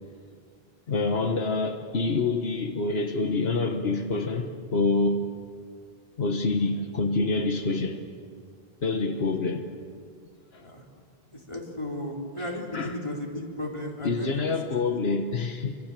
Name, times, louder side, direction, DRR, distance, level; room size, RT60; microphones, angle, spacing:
voice 1, 0.9-5.2 6.2-8.0 8.8-9.7 10.5-10.7 12.4-12.9 14.0-15.8, left 3 dB, 80° left, 1.5 m, -27 dB
voice 2, 11.3-14.3 14.7-14.8 15.1-15.2, left 1 dB, 30° left, 4.0 m, -35 dB
27.0 x 25.0 x 7.5 m
omnidirectional pair, 1.0 m